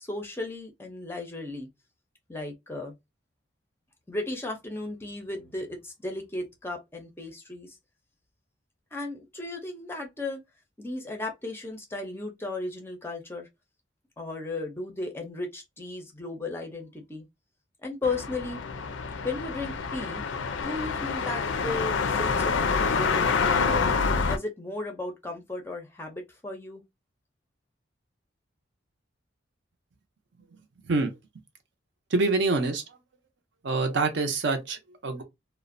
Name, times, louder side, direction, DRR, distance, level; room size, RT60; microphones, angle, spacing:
voice 1, 0.0-1.7 2.3-2.9 4.1-7.8 8.9-10.4 10.8-13.5 14.2-17.2 17.8-18.6 19.2-20.2 20.6-23.9 24.3-26.8, left 2 dB, 10° left, 0.4 m, -35 dB
sound 1, 18.0-24.4, left 5 dB, 80° left, 0.4 m, -27 dB
voice 2, 32.1-32.8 33.6-35.2, right 3 dB, 65° right, 0.6 m, -26 dB
2.4 x 2.1 x 2.5 m
head